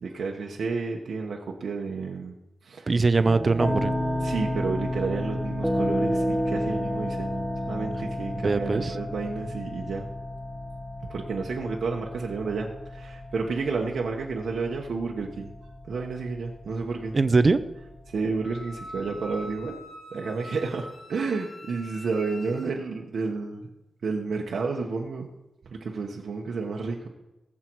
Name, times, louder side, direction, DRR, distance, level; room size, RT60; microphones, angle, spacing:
voice 1, 0.0-2.3 2.6-2.9 4.2-10.1 11.1-15.5 15.9-17.1 18.1-19.8 20.1-23.7 24.0-25.3 25.6-27.1, right 4 dB, 65° right, 0 dB, 1.1 m, -31 dB
voice 2, 2.9-3.9 8.3-8.9 17.1-17.6, right 3 dB, 30° right, 13 dB, 0.6 m, -22 dB
sound 1, 3.2-19.7, equal, ahead, 1.1 m, -32 dB
Wind instrument woodwind instrument, 18.4-22.7, equal, 35° left, 1.8 m, -44 dB
18.5 x 7.6 x 4.7 m, 1.0 s
wide cardioid pair, 155°, 0 cm